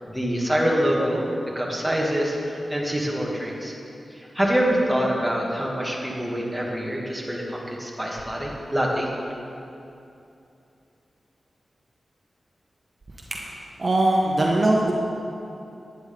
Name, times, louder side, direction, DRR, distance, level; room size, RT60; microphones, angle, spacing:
voice 1, 0.1-3.7 4.1-9.1, equal, 5° right, -3 dB, 2.3 m, -25 dB
voice 2, 13.3-14.9, right 2 dB, 50° right, -1 dB, 1.2 m, -21 dB
11.5 x 9.9 x 3.9 m, 2.7 s
cardioid pair, 55°, 0 cm